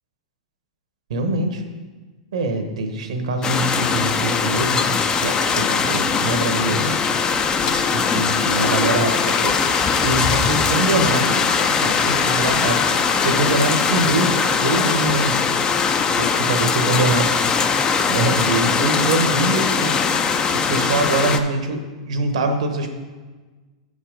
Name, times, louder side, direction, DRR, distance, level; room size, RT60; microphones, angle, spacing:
voice 1, 1.1-1.6 2.3-7.0 7.9-9.6 10.0-12.9 13.2-15.4 16.1-17.4 18.1-20.0 20.5-22.9, right 2 dB, 75° right, 6 dB, 1.1 m, -23 dB
sound 1, 3.4-21.4, left 5 dB, 25° left, 0.5 m, -20 dB
sound 2, 7.3-8.8 9.1-15.3 16.4-17.5, left 7 dB, 70° left, 0.7 m, -32 dB
7.1 x 5.5 x 5.1 m, 1.3 s
hypercardioid pair, 105°, 3 cm